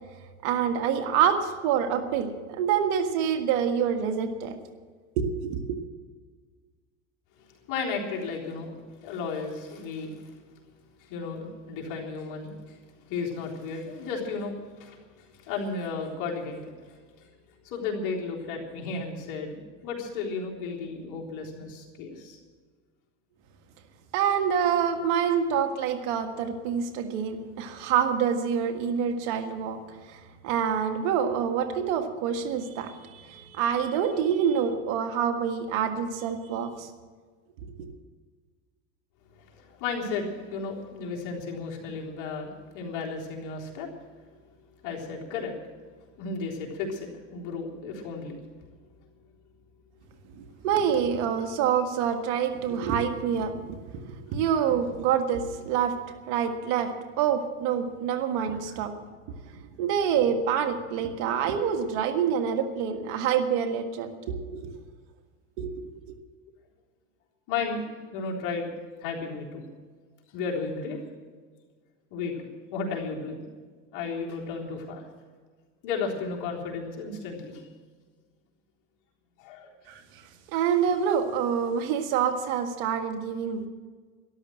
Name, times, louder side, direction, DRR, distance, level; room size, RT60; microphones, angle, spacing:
voice 1, 0.4-4.6 5.2-5.8 24.1-29.8 30.1-36.9 50.3-56.0 56.3-58.9 59.5-64.7 65.6-65.7 66.1-66.2 79.9-80.0 80.5-83.7, right 8 dB, 70° right, 7 dB, 1.8 m, -27 dB
voice 2, 7.7-8.7 9.0-10.1 11.0-12.8 13.1-15.0 15.4-16.6 17.6-22.4 25.0-25.1 39.5-43.9 44.8-45.5 46.2-48.4 67.5-67.8 68.1-68.7 69.0-69.6 70.3-71.0 72.1-73.5 73.9-75.1 75.8-77.6 79.4-79.7, left 4 dB, 55° left, -1 dB, 3.7 m, -34 dB
13.0 x 12.0 x 7.8 m, 1.5 s
supercardioid pair, 115°, 36 cm